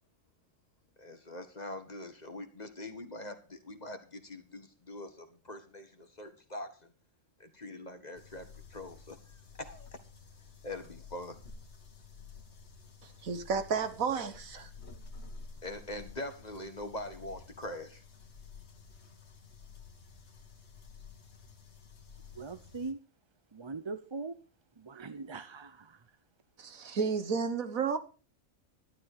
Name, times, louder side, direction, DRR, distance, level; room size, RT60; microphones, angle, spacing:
voice 1, 1.0-6.7 7.4-9.2 9.6-10.0 10.6-11.4 15.6-18.0, left 1 dB, 30° left, 1.7 m, -43 dB
sound 1, 8.1-22.9, left 4 dB, 55° left, 1.8 m, -52 dB
voice 2, 13.0-14.7 26.6-28.0, right 5 dB, 85° right, 1.8 m, -32 dB
voice 3, 22.3-23.0 23.5-24.4 24.8-26.0, right 3 dB, 30° right, 0.5 m, -41 dB
12.0 x 11.5 x 4.9 m
omnidirectional pair, 1.4 m